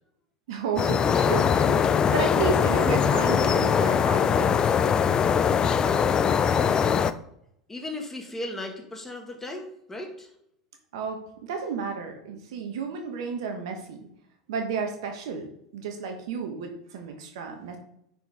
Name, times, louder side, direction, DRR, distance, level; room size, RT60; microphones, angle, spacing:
voice 1, 0.5-4.7 10.9-14.1 14.5-17.8, right 6 dB, 65° right, 4 dB, 1.2 m, -32 dB
sound 1, 0.8-7.1, left 7 dB, 25° left, 0.4 m, -22 dB
voice 2, 7.7-10.3, left 1 dB, 10° left, 1 dB, 1.9 m, -36 dB
10.0 x 4.5 x 3.6 m, 0.74 s
figure-of-eight pair, 85°, 3 cm